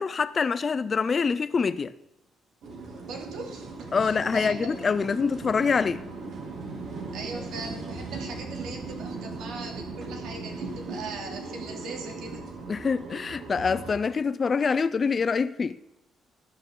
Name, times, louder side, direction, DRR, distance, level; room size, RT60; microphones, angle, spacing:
voice 1, 0.0-1.9 3.9-6.0 12.7-15.8, left 5 dB, 25° left, 0.4 m, -25 dB
sound 1, 2.6-13.9, right 3 dB, 50° right, 2.4 m, -38 dB
voice 2, 3.0-4.7 7.1-12.4, right 3 dB, 80° right, 2.6 m, -39 dB
14.5 x 11.5 x 3.7 m
cardioid pair, 180°, 0 cm